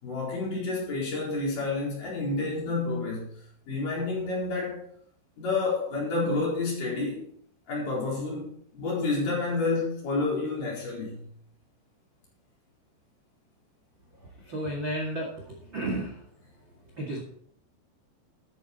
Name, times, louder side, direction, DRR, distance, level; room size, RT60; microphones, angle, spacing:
voice 1, 0.0-3.3 3.7-4.8 5.4-7.2 7.7-11.2, left 3 dB, 45° left, -4 dB, 5.4 m, -29 dB
voice 2, 14.5-16.1 17.0-17.2, right 1 dB, 40° right, -1 dB, 1.7 m, -32 dB
12.5 x 9.6 x 4.3 m, 0.64 s
omnidirectional pair, 5.5 m